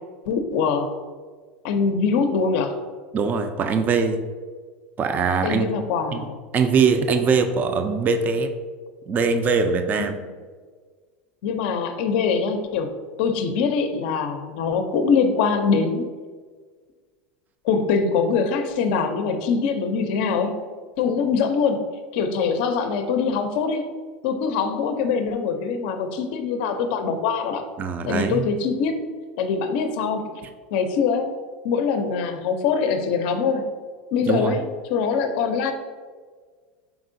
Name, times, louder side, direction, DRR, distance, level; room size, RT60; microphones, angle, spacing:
voice 1, 0.3-0.9 1.6-2.8 5.4-6.4 10.0-10.2 11.4-12.9 13.2-16.1 17.6-20.7 21.0-23.9 24.2-27.6 28.1-29.0 29.4-30.3 30.7-31.3 31.6-33.6 34.1-34.6 34.9-35.7, left 5 dB, 65° left, 7 dB, 0.4 m, -23 dB
voice 2, 3.1-4.2 5.0-5.7 6.1-6.3 6.5-8.5 9.1-10.2 27.8-28.5 34.3-34.6, right 5 dB, 30° right, 8 dB, 0.3 m, -22 dB
4.7 x 3.6 x 2.6 m, 1.5 s
supercardioid pair, 105°, 6 cm